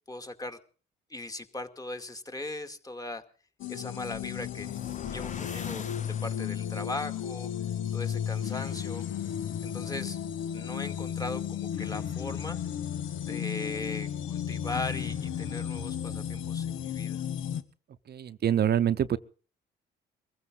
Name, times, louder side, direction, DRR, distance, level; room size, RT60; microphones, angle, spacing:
voice 1, 0.1-0.6 1.1-3.2 3.7-4.7 5.1-7.5 7.9-9.0 9.6-10.2 10.5-12.6 13.3-17.2, left 2 dB, 20° left, 7 dB, 2.3 m, -39 dB
sound 1, 3.6-17.6, left 9 dB, 80° left, 1.6 m, -34 dB
sound 2, 3.9-6.7, left 6 dB, 40° left, 1.2 m, -43 dB
voice 2, 18.1-19.2, right 10 dB, 55° right, 13 dB, 0.9 m, -25 dB
23.0 x 15.5 x 3.9 m, 0.40 s
cardioid pair, 90°, 20 cm